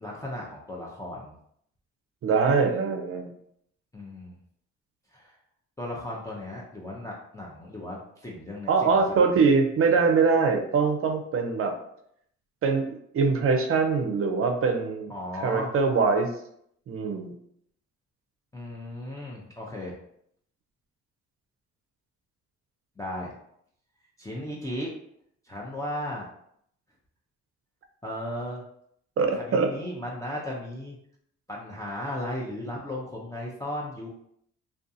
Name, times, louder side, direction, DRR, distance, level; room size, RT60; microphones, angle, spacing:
voice 1, 0.0-1.4 3.9-4.3 5.1-5.3 5.8-9.4 15.1-15.7 18.5-19.9 23.0-23.3 24.2-24.9 25.5-26.3 28.0-28.6 29.3-31.0 31.5-34.1, left 1 dB, 10° left, -4 dB, 0.4 m, -36 dB
voice 2, 2.2-3.3 8.7-11.7 12.6-12.9 13.1-15.1 15.4-16.3 16.9-17.3 29.2-29.7, right 4 dB, 45° right, 5 dB, 0.5 m, -23 dB
2.5 x 2.3 x 2.6 m, 0.70 s
cardioid pair, 90°, 30 cm